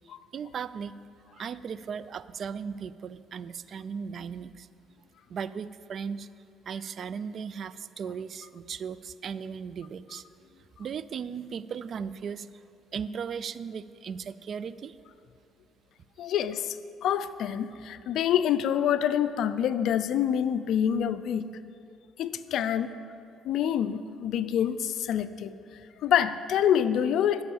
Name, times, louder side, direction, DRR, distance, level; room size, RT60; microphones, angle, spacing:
voice 1, 0.3-1.0 1.3-4.7 5.3-6.3 6.7-10.2 10.8-12.5 12.9-15.0, right 6 dB, 55° right, 15 dB, 0.4 m, -37 dB
voice 2, 16.2-16.8 17.0-21.5 22.2-22.9 23.4-25.5 26.0-27.4, left 9 dB, 70° left, 13 dB, 0.4 m, -26 dB
11.5 x 5.5 x 7.1 m, 2.4 s
cardioid pair, 85°, 0 cm